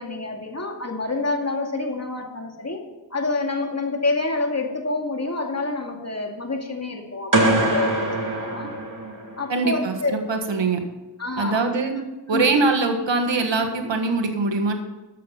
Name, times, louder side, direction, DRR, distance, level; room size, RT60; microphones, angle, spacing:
voice 1, 0.0-2.8 3.1-8.7 9.4-10.1 11.2-11.6 12.3-12.5, left 2 dB, 35° left, 2 dB, 2.3 m, -27 dB
sound 1, 7.3-9.4, right 1 dB, 50° right, 2.4 m, -22 dB
voice 2, 9.5-10.8 11.4-11.9 12.3-14.7, right 3 dB, 85° right, 4 dB, 1.6 m, -22 dB
12.5 x 7.6 x 5.6 m, 1.1 s
cardioid pair, 50°, 43 cm